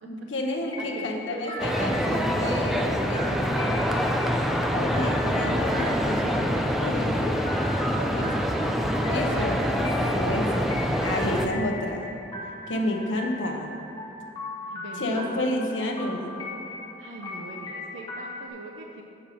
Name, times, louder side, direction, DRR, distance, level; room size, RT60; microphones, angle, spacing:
voice 1, 0.0-3.9 4.7-7.4 8.1-8.3 9.1-9.6 10.1-12.1 12.7-13.7 15.0-16.4, left 1 dB, 80° left, 2 dB, 0.9 m, -30 dB
sound 1, 0.7-18.5, left 2 dB, 25° left, 1.1 m, -39 dB
voice 2, 0.8-1.9 7.8-8.7 9.3-9.6 14.7-15.5 17.0-19.0, right 2 dB, 90° right, 1 dB, 0.6 m, -40 dB
sound 2, 1.6-11.5, equal, ahead, 0.4 m, -25 dB
7.1 x 5.0 x 6.3 m, 2.6 s
head